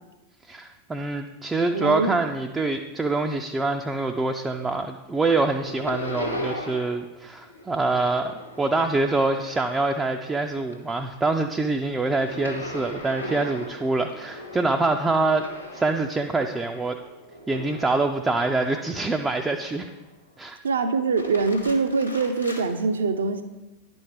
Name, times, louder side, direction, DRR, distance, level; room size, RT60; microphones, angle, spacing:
voice 1, 0.5-15.5 15.7-17.0 17.5-19.9 20.4-20.6, right 3 dB, 10° right, 4 dB, 0.4 m, -25 dB
voice 2, 1.7-2.1 20.6-23.4, right 4 dB, 65° right, 9 dB, 0.5 m, -24 dB
sound 1, 4.1-4.8 5.1-7.1 7.4-10.3 10.6-19.0 19.4-20.1 21.0-22.7, left 1 dB, 90° left, 1.0 m, -38 dB
10.5 x 4.4 x 3.2 m, 1.1 s
figure-of-eight pair, 90°, 0 cm